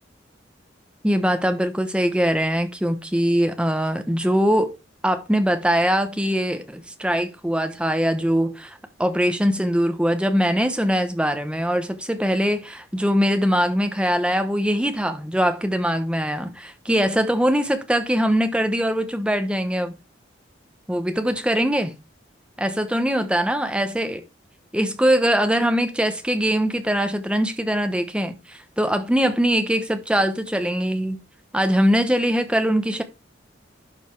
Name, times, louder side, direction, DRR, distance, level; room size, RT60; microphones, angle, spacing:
voice 1, 1.0-4.8 5.0-20.0 20.9-21.9 22.6-24.2 24.7-31.2 31.5-33.0, equal, 5° right, 1.0 m, -22 dB
11.5 x 5.2 x 4.6 m
head